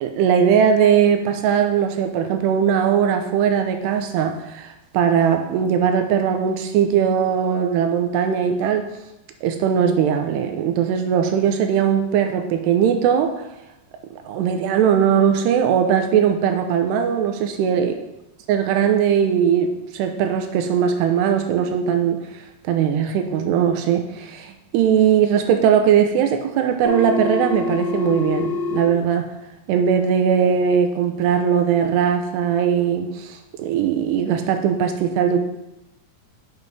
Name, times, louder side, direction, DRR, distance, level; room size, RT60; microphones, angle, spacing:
voice 1, 0.0-8.9 9.4-13.3 14.1-17.9 18.5-22.3 22.7-29.3 29.7-35.4, right 8 dB, 90° right, 6 dB, 2.8 m, -19 dB
Telephone, 26.8-28.8, left 3 dB, 35° left, 3.5 m, -25 dB
7.7 x 5.2 x 4.7 m, 0.91 s
omnidirectional pair, 4.8 m